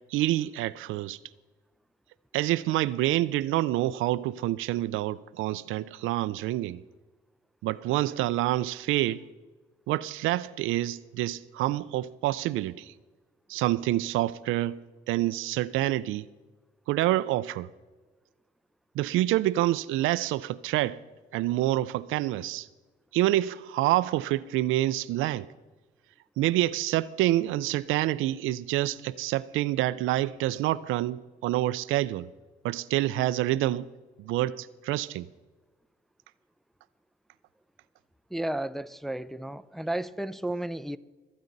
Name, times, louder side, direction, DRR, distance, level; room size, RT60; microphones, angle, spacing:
voice 1, 0.1-1.2 2.3-6.8 7.6-9.3 9.9-12.9 13.5-16.3 16.9-17.7 18.9-21.0 21.3-22.7 23.1-25.5 26.4-32.3 32.6-33.9 34.2-35.3, right 15 dB, 90° right, 0.4 m, -27 dB
voice 2, 38.3-41.0, right 1 dB, ahead, 0.4 m, -33 dB
23.5 x 8.5 x 4.0 m
cardioid pair, 90°, 20 cm